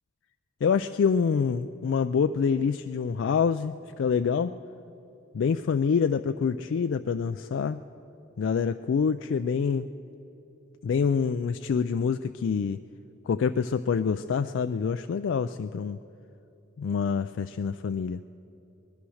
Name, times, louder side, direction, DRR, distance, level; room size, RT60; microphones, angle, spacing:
voice 1, 0.6-4.5 5.3-7.8 8.4-9.9 10.8-12.8 13.3-16.0 16.8-18.2, left 6 dB, 65° left, 9 dB, 0.3 m, -26 dB
19.5 x 11.5 x 6.3 m, 2.9 s
head